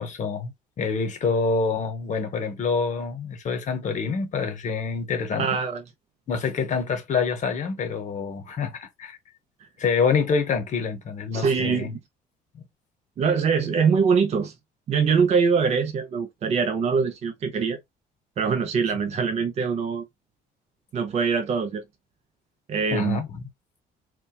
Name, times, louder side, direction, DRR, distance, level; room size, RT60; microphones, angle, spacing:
voice 1, 0.0-5.6 6.3-9.2 9.8-11.9 22.9-23.4, left 5 dB, 45° left, 0.8 m, -26 dB
voice 2, 5.4-5.8 11.3-12.0 13.2-14.5 14.9-17.8 18.4-20.0 20.9-21.8 22.7-23.2, right 5 dB, 40° right, 0.5 m, -23 dB
2.8 x 2.2 x 2.2 m
cardioid pair, 110°, 17 cm